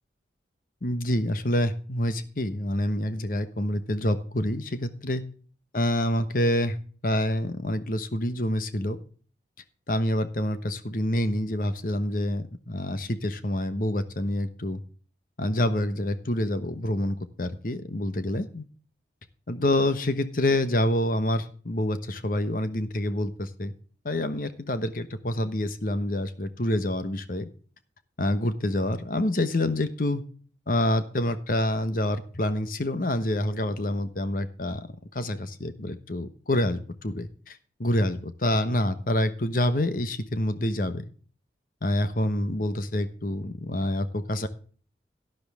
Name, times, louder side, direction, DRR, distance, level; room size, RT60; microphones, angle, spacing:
voice 1, 0.8-5.2 5.7-6.8 7.0-9.0 9.9-14.8 15.4-18.6 19.5-23.7 24.0-27.5 28.2-30.2 30.7-34.9 35.1-41.0 41.8-44.5, left 1 dB, 50° left, 11 dB, 1.1 m, -27 dB
12.0 x 10.5 x 3.5 m, 0.41 s
head